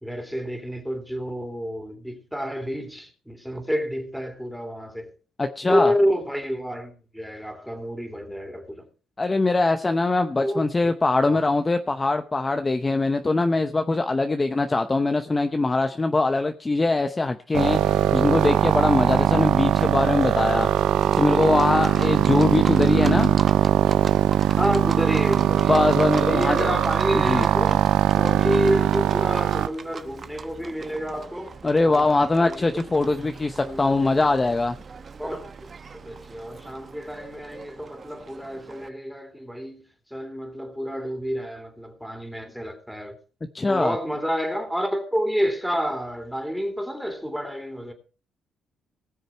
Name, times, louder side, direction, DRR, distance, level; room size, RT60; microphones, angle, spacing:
voice 1, 0.0-5.1 5.7-8.8 10.4-10.9 11.2-11.4 24.5-25.8 26.1-27.9 28.1-31.6 31.9-32.7 33.6-34.4 35.2-39.8 40.1-43.2 43.7-47.9, equal, ahead, 3.2 m, -29 dB
voice 2, 5.4-5.9 9.2-20.7 21.2-23.4 25.7-26.8 27.1-27.4 31.6-34.8 43.5-44.0, left 3 dB, 25° left, 0.8 m, -22 dB
sound 1, 17.5-29.7, right 12 dB, 85° right, 0.5 m, -21 dB
Livestock farm animals working animals, 19.0-38.9, right 5 dB, 40° right, 0.9 m, -41 dB
19.5 x 6.6 x 4.5 m
cardioid pair, 90°, 0 cm